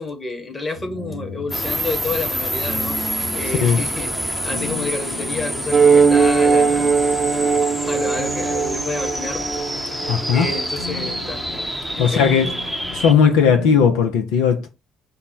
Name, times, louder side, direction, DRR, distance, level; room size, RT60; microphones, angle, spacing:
voice 1, 0.0-6.9 7.9-9.5 10.3-11.4 11.9-12.5, left 3 dB, 20° left, 1.3 m, -29 dB
sound 1, 0.7-14.0, left 4 dB, 85° left, 0.9 m, -37 dB
sound 2, 1.5-13.1, equal, ahead, 0.8 m, -27 dB
voice 2, 3.4-3.8 10.0-10.5 12.0-12.5 12.9-14.7, left 6 dB, 65° left, 0.5 m, -17 dB
sound 3, 5.7-10.7, right 5 dB, 20° right, 0.4 m, -19 dB
5.1 x 2.1 x 4.5 m
figure-of-eight pair, 50°, 0 cm